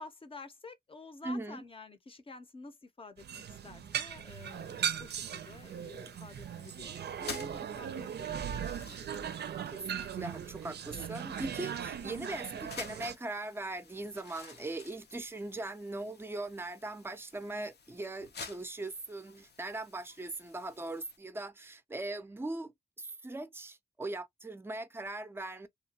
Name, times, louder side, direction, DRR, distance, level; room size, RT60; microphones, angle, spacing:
voice 1, 0.0-9.3, left 3 dB, 35° left, 0.6 m, -50 dB
voice 2, 1.2-1.6 9.7-25.7, right 2 dB, 15° right, 0.4 m, -40 dB
sound 1, 3.2-13.2, right 8 dB, 85° right, 0.4 m, -39 dB
sound 2, 4.3-21.2, left 5 dB, 85° left, 0.7 m, -52 dB
2.9 x 2.2 x 2.7 m
wide cardioid pair, 130°, 17 cm